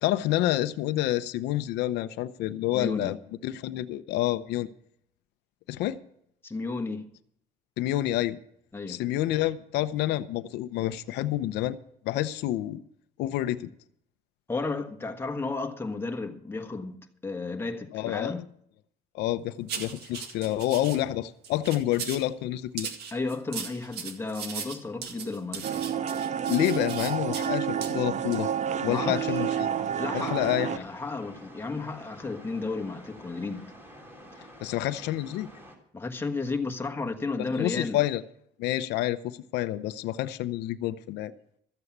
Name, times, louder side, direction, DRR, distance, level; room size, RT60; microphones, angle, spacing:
voice 1, 0.0-3.2 3.4-4.7 5.7-6.0 7.8-8.4 8.9-11.8 12.0-12.8 13.2-13.7 17.9-18.3 19.1-22.9 26.5-28.5 28.8-29.7 30.1-30.8 34.6-35.5 37.6-38.2 38.6-41.3, left 14 dB, 85° left, 0.7 m, -28 dB
voice 2, 2.7-3.1 6.4-7.1 8.7-9.0 14.5-18.4 23.1-25.8 28.9-29.4 30.0-33.7 35.9-38.0, left 3 dB, 15° left, 1.4 m, -33 dB
sound 1, 19.7-21.0 21.4-22.3 22.8-27.5 27.8-27.9 28.3-28.5, right 6 dB, 75° right, 2.0 m, -38 dB
sound 2, 25.6-30.8, right 8 dB, 45° right, 0.7 m, -29 dB
sound 3, 28.7-35.8, equal, 15° right, 3.5 m, -49 dB
14.0 x 8.0 x 7.2 m
cardioid pair, 110°, 17 cm